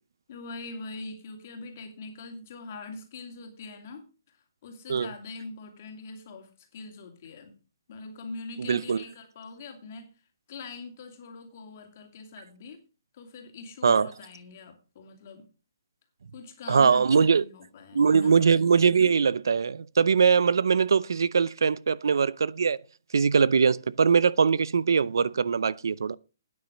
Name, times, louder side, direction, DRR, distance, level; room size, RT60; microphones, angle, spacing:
voice 1, 0.3-4.0 4.6-7.6 7.9-10.1 10.5-12.8 13.1-15.4 16.3-18.3, left 3 dB, 35° left, 2.6 m, -42 dB
voice 2, 8.6-9.0 13.8-14.1 16.7-17.4 17.9-22.8 23.1-26.2, right 6 dB, 80° right, 0.6 m, -22 dB
11.5 x 9.5 x 5.1 m
hypercardioid pair, 175°, 2 cm